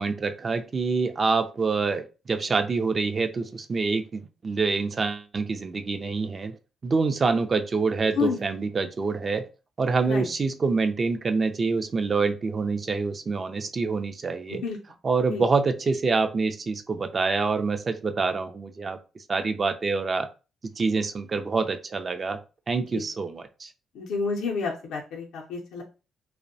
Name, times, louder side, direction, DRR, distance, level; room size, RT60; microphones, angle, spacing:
voice 1, 0.0-6.5 6.8-9.4 9.8-14.6 15.0-19.0 19.3-20.3 20.8-22.4 22.7-23.7, right 4 dB, 35° right, 7 dB, 0.3 m, -26 dB
voice 2, 23.9-25.8, left 5 dB, 80° left, -1 dB, 0.5 m, -29 dB
2.6 x 2.0 x 2.6 m, 0.31 s
cardioid pair, 90°, 0 cm